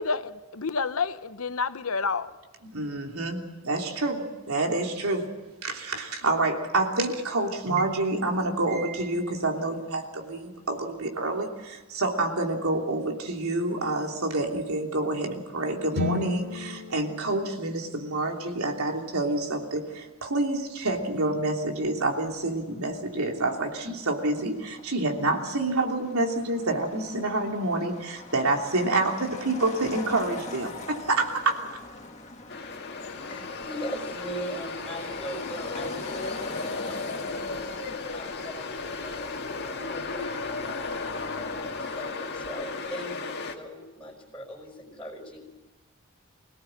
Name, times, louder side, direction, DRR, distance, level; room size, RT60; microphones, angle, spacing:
voice 1, 0.0-2.3, left 4 dB, 75° left, 0.9 m, -29 dB
voice 2, 2.6-5.3 5.6-31.6, right 2 dB, 90° right, 3.1 m, -28 dB
sound 1, 15.9-20.0, left 2 dB, 50° right, 2.5 m, -35 dB
Motor vehicle (road), 21.8-40.6, left 3 dB, 30° left, 2.0 m, -45 dB
sound 2, 32.5-43.5, left 3 dB, 50° left, 2.0 m, -35 dB
voice 3, 33.3-37.6 38.1-45.4, equal, 5° left, 4.6 m, -40 dB
25.0 x 17.5 x 7.9 m
head